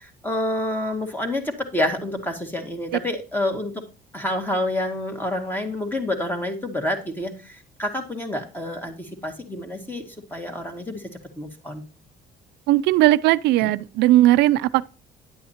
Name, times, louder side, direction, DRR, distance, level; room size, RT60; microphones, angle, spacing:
voice 1, 0.0-3.8 4.1-11.0 11.4-11.8 13.6-13.7, left 1 dB, 10° left, 2.0 m, -28 dB
voice 2, 12.7-14.9, right 15 dB, 85° right, 0.4 m, -17 dB
10.0 x 8.4 x 2.8 m
cardioid pair, 110°, 17 cm